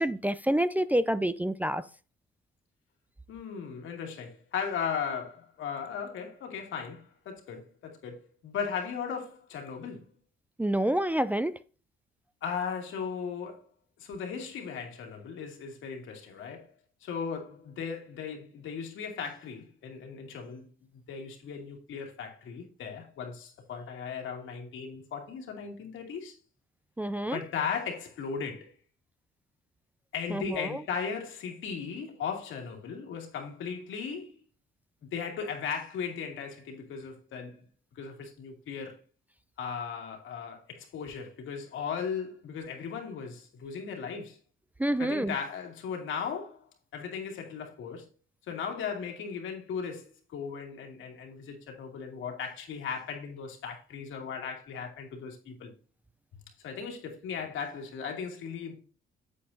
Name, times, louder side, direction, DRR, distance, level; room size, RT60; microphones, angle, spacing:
voice 1, 0.0-1.8 10.6-11.5 27.0-27.4 30.3-30.8 44.8-45.4, right 1 dB, 10° right, 0.4 m, -28 dB
voice 2, 3.3-10.0 12.4-13.6 14.0-16.7 17.0-20.7 21.1-26.4 27.3-28.7 30.1-34.3 35.0-37.6 38.0-39.0 39.6-44.4 45.0-46.7 46.9-48.1 48.5-55.7 56.6-58.8, left 6 dB, 80° left, 2.4 m, -37 dB
8.5 x 7.7 x 2.7 m
cardioid pair, 90°, 20 cm